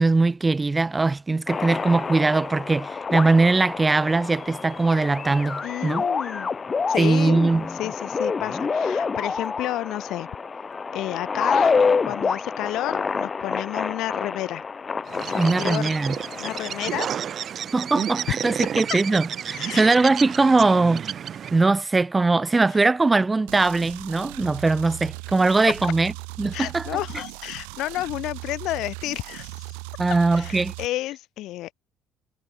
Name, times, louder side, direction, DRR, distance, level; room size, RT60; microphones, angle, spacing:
voice 1, 0.0-6.0 7.0-7.7 15.4-16.2 17.7-21.1 21.5-26.1 26.4-27.0 30.0-30.7, right 3 dB, 20° right, 0.3 m, -21 dB
sound 1, 1.5-16.9, left 5 dB, 35° left, 0.7 m, -27 dB
voice 2, 5.6-6.5 6.9-7.4 7.7-10.3 10.9-11.8 12.1-14.6 15.2-15.9 16.4-17.1 19.5-19.9 26.5-29.5 30.3-31.7, left 15 dB, 70° left, 1.6 m, -31 dB
Bird, 15.1-21.7, right 8 dB, 50° right, 1.0 m, -31 dB
sound 2, 23.5-30.9, right 34 dB, 80° right, 1.7 m, -38 dB
hypercardioid pair, 65°, 0 cm